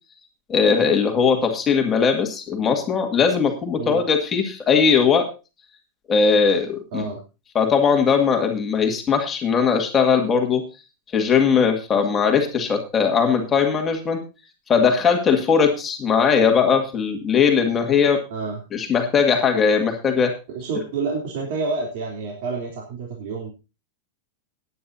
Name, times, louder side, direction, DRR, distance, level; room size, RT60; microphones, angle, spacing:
voice 1, 0.5-5.3 6.1-7.1 7.5-10.6 11.1-14.2 14.7-18.2 18.7-20.3, left 6 dB, 20° left, 3 dB, 2.1 m, -19 dB
voice 2, 6.9-7.2 18.3-18.6 20.2-23.5, right 4 dB, 65° right, -1 dB, 3.2 m, -29 dB
18.0 x 9.8 x 2.7 m, 0.29 s
supercardioid pair, 150°, 0 cm